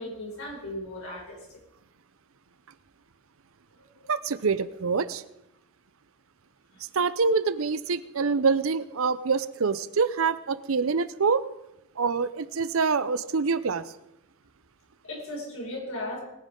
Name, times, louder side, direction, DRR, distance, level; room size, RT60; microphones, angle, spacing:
voice 1, 0.0-1.6 3.7-4.1 15.0-16.2, left 1 dB, 75° left, -3 dB, 6.0 m, -37 dB
voice 2, 4.1-5.2 6.9-11.4 12.0-13.8, right 5 dB, 70° right, 15 dB, 0.7 m, -25 dB
20.5 x 10.5 x 3.8 m, 0.88 s
head